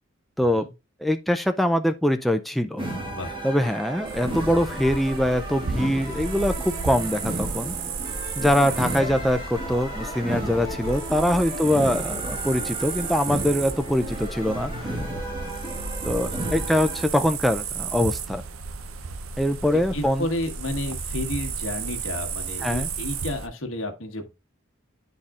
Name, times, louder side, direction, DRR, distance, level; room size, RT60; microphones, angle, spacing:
voice 1, 0.4-0.7 3.0-3.4 6.9-7.2 8.7-8.8 11.6-11.9 16.2-16.7 19.7-24.3, left 1 dB, 70° left, 1.3 m, -32 dB
voice 2, 1.0-2.8 3.4-7.8 8.4-14.9 16.0-18.4 19.4-20.3 22.6-22.9, equal, ahead, 0.3 m, -23 dB
sound 1, 2.8-17.0, right 1 dB, 25° right, 1.9 m, -33 dB
sound 2, 4.0-23.5, right 5 dB, 80° right, 0.6 m, -33 dB
10.0 x 4.1 x 2.4 m
head